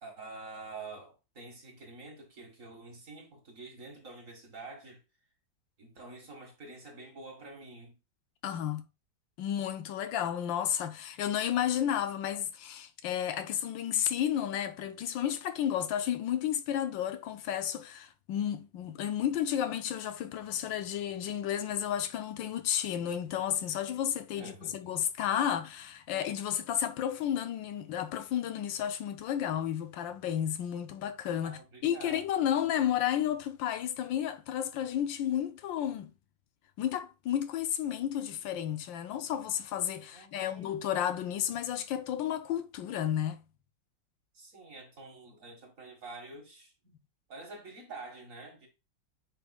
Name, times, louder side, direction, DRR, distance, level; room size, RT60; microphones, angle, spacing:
voice 1, 0.0-5.0 5.8-8.0 24.4-24.9 31.4-32.4 40.1-40.8 44.3-47.0 47.3-48.7, right 3 dB, 45° right, 2.1 m, -47 dB
voice 2, 8.4-8.8 9.4-36.1 36.8-43.4, left 10 dB, 80° left, 1.4 m, -32 dB
8.5 x 5.2 x 2.3 m
omnidirectional pair, 2.0 m